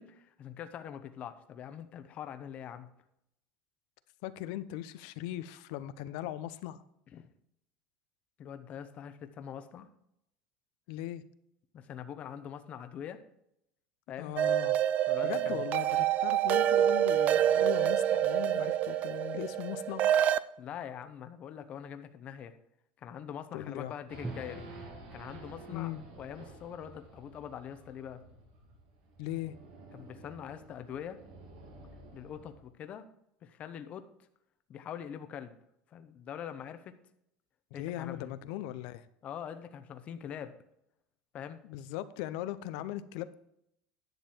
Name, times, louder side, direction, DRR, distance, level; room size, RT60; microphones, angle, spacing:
voice 1, 0.0-2.9 7.1-7.3 8.4-9.9 11.7-13.2 14.1-14.4 15.1-15.6 20.6-22.5 23.0-24.6 25.1-25.9 26.2-28.2 29.9-31.2 32.1-33.0 33.4-34.0 34.7-35.5 35.9-36.9 37.7-38.3 39.2-40.5 41.3-41.6, left 9 dB, 35° left, 9 dB, 0.9 m, -43 dB
voice 2, 4.2-6.8 10.9-11.2 14.2-14.8 15.2-20.0 23.5-23.9 25.7-26.0 29.2-29.6 37.7-39.1 41.6-43.4, left 13 dB, 70° left, 14 dB, 0.7 m, -39 dB
sound 1, 14.4-20.4, right 11 dB, 40° right, 0.4 m, -27 dB
Race car auto racing / Idling / Accelerating revving vroom, 24.1-32.7, right 2 dB, 75° right, 3.1 m, -51 dB
Drum, 24.2-28.2, right 3 dB, 15° right, 0.8 m, -49 dB
10.5 x 6.8 x 4.4 m, 0.78 s
supercardioid pair, 135°, 4 cm